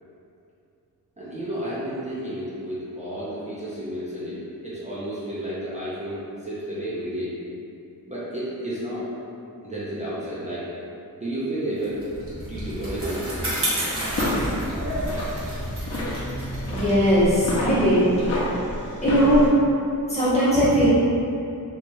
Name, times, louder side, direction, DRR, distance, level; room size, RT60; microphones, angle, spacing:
voice 1, 1.2-4.4 4.6-7.3 8.1-9.1 9.6-10.7 11.2-12.0 12.5-13.3, right 1 dB, 20° right, -11 dB, 0.5 m, -31 dB
Bicycle, 11.8-18.5, right 1 dB, 40° right, 0.9 m, -31 dB
sound 1, 14.0-19.5, left 1 dB, 45° left, 0.7 m, -29 dB
voice 2, 16.7-18.0 19.0-19.5 20.1-20.9, equal, 20° left, -12 dB, 1.1 m, -19 dB
3.2 x 3.0 x 2.6 m, 2.6 s
wide cardioid pair, 165°, 35 cm